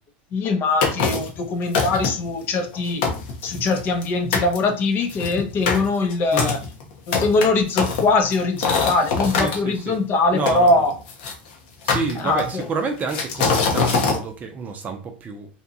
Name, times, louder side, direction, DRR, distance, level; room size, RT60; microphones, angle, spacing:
voice 1, 0.3-3.0 3.4-6.6 7.1-10.9 12.2-12.6, left 3 dB, 40° left, 0.6 m, -22 dB
sound 1, 0.8-1.3 1.7-2.3 2.7-2.8 3.0-4.1 4.3-4.6 5.1-9.6 10.4-11.3 11.9-12.6 13.1-14.2, left 4 dB, 70° left, 0.8 m, -23 dB
voice 2, 8.9-10.0 10.3-10.8 11.8-15.5, right 4 dB, 30° right, 0.5 m, -29 dB
2.7 x 2.3 x 2.7 m
hypercardioid pair, 110°, 6 cm